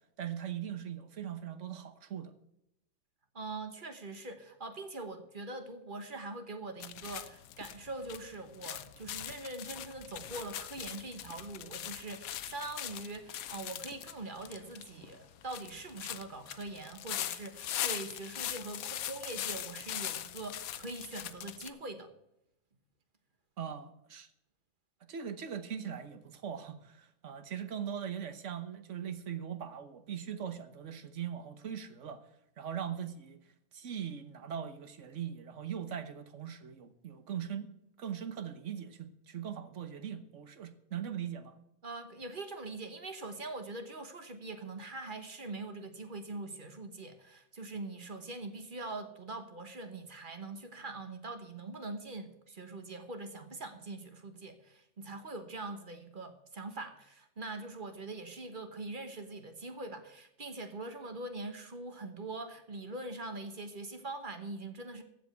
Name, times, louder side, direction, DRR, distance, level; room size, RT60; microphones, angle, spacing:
voice 1, 0.2-2.3 23.6-24.3 25.1-32.2 32.6-33.4 33.7-37.7 38.0-41.6, right 8 dB, 60° right, 11 dB, 1.3 m, -40 dB
voice 2, 3.3-22.1 41.8-65.0, right 2 dB, 40° right, 7 dB, 1.4 m, -43 dB
sound 1, 6.8-21.7, left 11 dB, 90° left, 1.1 m, -41 dB
15.0 x 5.3 x 7.9 m, 0.81 s
omnidirectional pair, 1.4 m